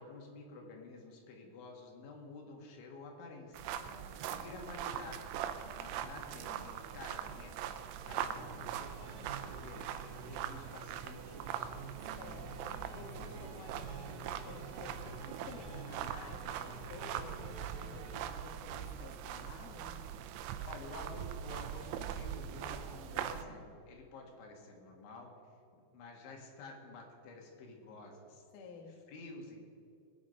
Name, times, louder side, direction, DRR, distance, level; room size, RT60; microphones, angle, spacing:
voice 1, 0.0-5.4 5.6-9.9 10.2-11.9 20.6-25.3 25.8-28.4 28.9-29.6, left 3 dB, 85° left, 1 dB, 4.2 m, -51 dB
sound 1, 3.5-23.4, right 10 dB, 85° right, 2.9 m, -42 dB
voice 2, 3.9-4.3 12.2-20.0 28.5-28.9, left 4 dB, 60° left, 2 dB, 2.4 m, -52 dB
sound 2, 8.0-18.2, right 3 dB, 50° right, 2.6 m, -50 dB
20.5 x 8.6 x 5.4 m, 2.5 s
omnidirectional pair, 5.2 m